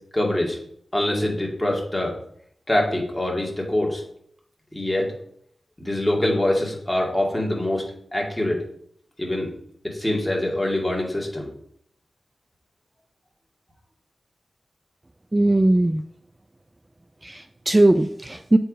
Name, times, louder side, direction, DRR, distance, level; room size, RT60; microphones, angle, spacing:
voice 1, 0.1-0.6 0.9-2.1 2.7-4.0 4.7-5.1 5.8-7.8 8.1-8.6 9.2-9.5 9.8-11.5, left 1 dB, 10° left, -1 dB, 2.3 m, -24 dB
voice 2, 15.3-16.0 17.2-18.6, right 1 dB, 25° right, 10 dB, 0.3 m, -19 dB
7.6 x 4.6 x 5.0 m, 0.68 s
wide cardioid pair, 75°, 0 cm